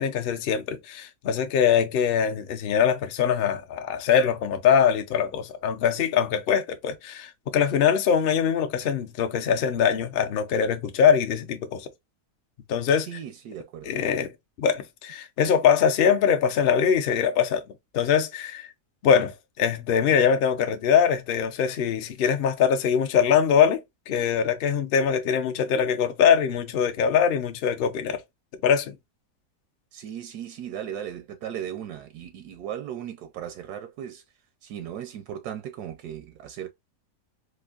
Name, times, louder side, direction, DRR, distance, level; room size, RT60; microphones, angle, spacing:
voice 1, 0.0-11.9 12.7-13.1 13.8-14.3 14.6-17.7 17.9-18.7 19.0-28.2 28.6-29.0, left 7 dB, 70° left, 0.5 m, -22 dB
voice 2, 13.1-13.9 29.9-34.2 34.6-36.7, right 10 dB, 80° right, 1.1 m, -37 dB
4.4 x 2.5 x 2.3 m
omnidirectional pair, 1.7 m